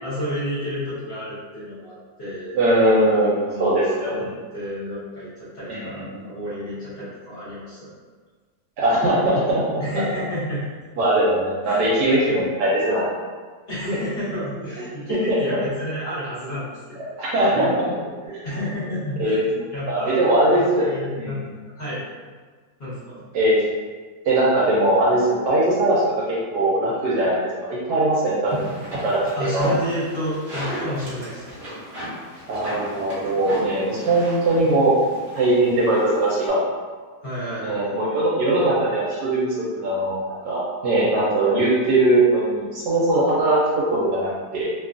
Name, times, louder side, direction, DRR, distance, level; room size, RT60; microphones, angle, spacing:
voice 1, 0.0-2.6 3.1-4.3 4.5-5.3 5.5-7.9 9.8-10.6 11.6-11.9 13.7-17.7 18.4-20.2 20.5-21.4 21.8-22.0 22.8-23.2 29.3-31.8 37.2-38.0, equal, 45° left, -11 dB, 1.1 m, -30 dB
voice 2, 2.5-4.2 5.7-6.0 8.8-9.6 11.0-13.2 15.1-15.4 17.2-17.7 18.2-18.4 19.2-19.4 19.9-20.9 21.2-21.4 23.3-23.6 24.2-26.0 26.3-28.7 29.0-29.6 32.5-34.9 35.4-36.6 37.6-44.7, right 1 dB, 85° right, -7 dB, 1.2 m, -20 dB
sound 1, 28.5-36.5, equal, 40° right, 0.8 m, -34 dB
2.9 x 2.3 x 2.5 m, 1.5 s
omnidirectional pair, 1.7 m